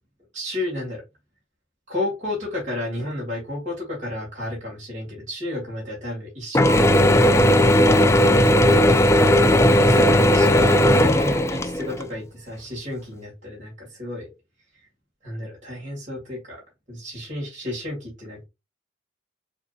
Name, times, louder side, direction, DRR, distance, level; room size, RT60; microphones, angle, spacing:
voice 1, 0.3-1.0 1.9-7.3 9.6-14.3 15.2-16.6 16.9-18.4, left 1 dB, 40° right, 2.1 m, -31 dB
Mechanisms / Drill, 6.5-12.0, left 1 dB, 15° left, 0.4 m, -16 dB
6.5 x 2.9 x 2.4 m
head